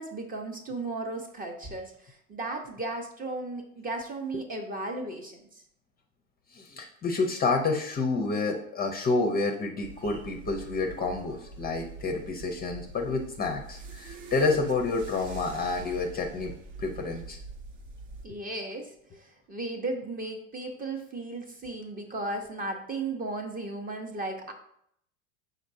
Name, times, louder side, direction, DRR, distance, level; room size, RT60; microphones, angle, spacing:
voice 1, 0.0-5.4 18.2-18.9 19.1-24.5, right 2 dB, 20° right, 4 dB, 0.6 m, -35 dB
voice 2, 6.5-16.5 16.8-17.4, left 3 dB, 25° left, 3 dB, 0.5 m, -29 dB
sound 1, 9.8-18.3, right 4 dB, 65° right, 0.9 m, -44 dB
5.1 x 4.0 x 2.6 m, 0.71 s
hypercardioid pair, 90°, 41 cm